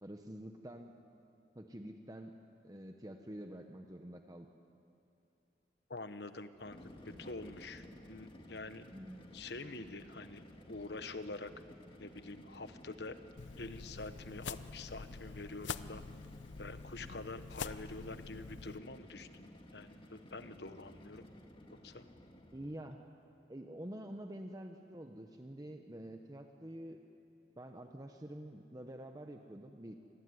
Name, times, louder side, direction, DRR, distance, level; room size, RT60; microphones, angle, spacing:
voice 1, 0.0-1.0 1.5-2.4 2.6-4.5 8.9-9.2 22.5-23.0 23.5-27.0 27.5-30.0, right 1 dB, 20° right, 4 dB, 1.0 m, -47 dB
voice 2, 5.9-8.9 9.3-11.5 12.0-13.2 13.6-16.0 16.6-21.3 21.7-22.1, left 3 dB, 65° left, 10 dB, 1.2 m, -46 dB
sound 1, 6.5-23.0, left 1 dB, 30° left, 2.1 m, -55 dB
sound 2, 13.4-18.8, left 5 dB, 85° left, 0.7 m, -46 dB
27.0 x 20.0 x 9.7 m, 2.7 s
head